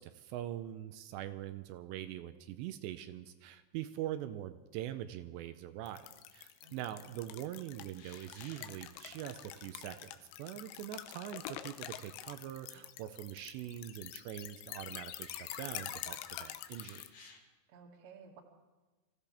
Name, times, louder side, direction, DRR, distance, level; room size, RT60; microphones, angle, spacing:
voice 1, 0.0-10.1 10.4-17.3, right 12 dB, 80° right, 10 dB, 2.6 m, -43 dB
sound 1, 5.9-17.1, left 12 dB, 90° left, 3.3 m, -46 dB
voice 2, 6.6-7.0 17.7-18.4, right 6 dB, 45° right, 0 dB, 2.4 m, -55 dB
sound 2, 7.9-8.8 10.3-10.4 11.3-12.1 12.5-12.6 14.5-14.6 16.7-17.4, left 5 dB, 70° left, 4.1 m, -57 dB
26.0 x 16.0 x 3.5 m, 1.2 s
omnidirectional pair, 5.5 m